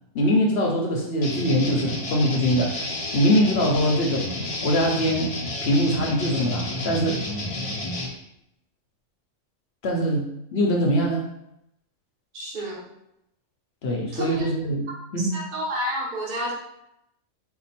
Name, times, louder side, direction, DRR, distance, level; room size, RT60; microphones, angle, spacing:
voice 1, 0.1-2.8 3.1-4.3 4.6-5.3 5.6-7.2 9.8-11.3 13.8-15.3, equal, 60° left, -1 dB, 0.9 m, -22 dB
sound 1, 1.2-8.1, left 1 dB, 35° left, 0.6 m, -31 dB
voice 2, 12.3-12.8 14.1-14.5 15.2-16.5, equal, 40° right, -5 dB, 1.1 m, -30 dB
4.4 x 2.2 x 4.2 m, 0.80 s
omnidirectional pair, 1.3 m